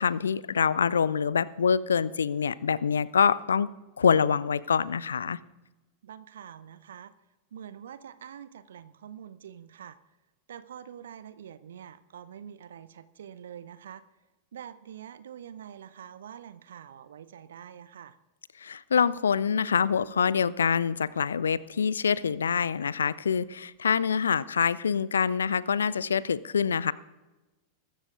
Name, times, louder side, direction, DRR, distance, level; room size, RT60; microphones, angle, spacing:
voice 1, 0.0-3.7 4.0-5.4 18.6-26.9, left 6 dB, 70° left, 21 dB, 0.4 m, -25 dB
voice 2, 6.0-7.1 7.5-10.0 10.5-14.0 14.5-18.2, right 9 dB, 65° right, 15 dB, 0.5 m, -45 dB
21.5 x 12.5 x 2.5 m, 1.1 s
figure-of-eight pair, 90°, 0 cm